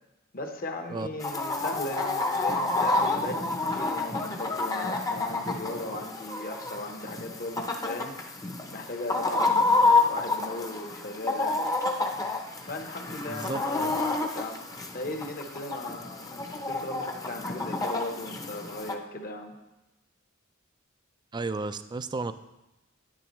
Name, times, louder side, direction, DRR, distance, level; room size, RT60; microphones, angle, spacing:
voice 1, 0.3-8.4 8.7-11.9 12.7-19.6, left 2 dB, 45° left, 4 dB, 1.0 m, -37 dB
Chicken rooster, 1.2-18.9, left 3 dB, 20° left, 0.7 m, -29 dB
voice 2, 13.3-13.9 21.3-22.3, right 3 dB, 20° right, 12 dB, 0.3 m, -33 dB
10.5 x 9.3 x 3.1 m, 0.98 s
head